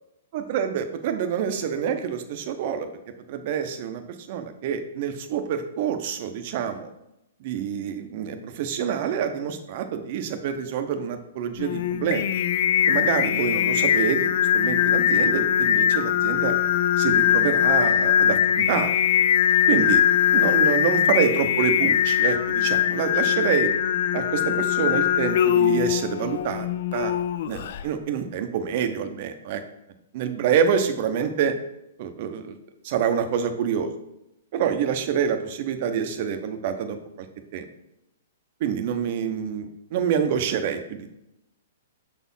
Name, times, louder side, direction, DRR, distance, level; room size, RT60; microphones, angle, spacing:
voice 1, 0.3-2.9 3.3-6.9 7.4-12.3 12.9-16.5 17.0-19.0 19.7-20.0 20.3-23.7 24.1-27.1 27.5-29.6 30.1-31.5 32.0-32.6 32.8-33.9 34.5-37.3 37.5-37.6 38.6-41.1, right 8 dB, 35° right, 8 dB, 0.7 m, -27 dB
Singing, 11.6-27.8, left 10 dB, 45° left, 0.3 m, -21 dB
6.9 x 4.2 x 5.5 m, 0.86 s
hypercardioid pair, 175°, 0 cm